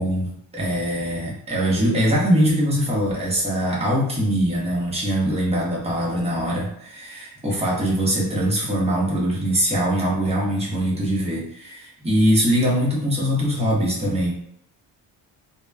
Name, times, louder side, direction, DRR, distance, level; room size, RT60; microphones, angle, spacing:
voice 1, 0.0-14.3, equal, 15° right, -4 dB, 1.0 m, -22 dB
2.9 x 2.2 x 2.3 m, 0.68 s
cardioid pair, 85°, 47 cm